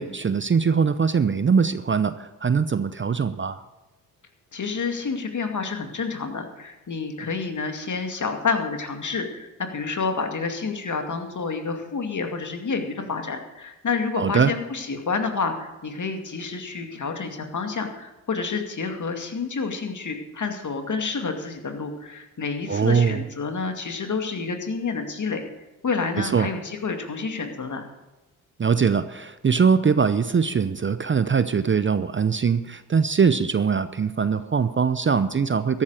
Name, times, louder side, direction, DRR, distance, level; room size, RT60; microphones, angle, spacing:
voice 1, 0.0-3.6 14.2-14.5 22.7-23.2 26.2-26.5 28.6-35.8, right 6 dB, 30° right, 13 dB, 0.7 m, -22 dB
voice 2, 4.5-25.4 25.8-27.9, left 4 dB, 45° left, 5 dB, 2.3 m, -29 dB
14.0 x 11.5 x 4.9 m, 1.1 s
supercardioid pair, 50°, 42 cm